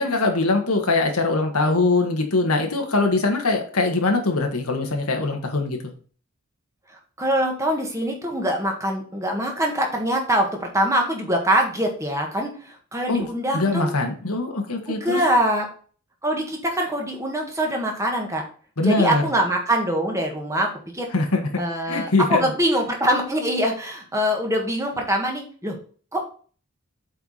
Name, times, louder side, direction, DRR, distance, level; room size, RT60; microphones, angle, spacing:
voice 1, 0.0-5.9 13.1-13.3 13.5-15.2 18.8-19.2 21.1-21.5 21.9-22.5, left 3 dB, 85° left, 4 dB, 1.7 m, -22 dB
voice 2, 6.9-13.9 14.9-15.7 16.2-18.4 18.8-21.1 21.6-25.8 26.1-26.2, equal, 15° right, 2 dB, 1.6 m, -24 dB
8.0 x 4.7 x 4.1 m, 0.41 s
head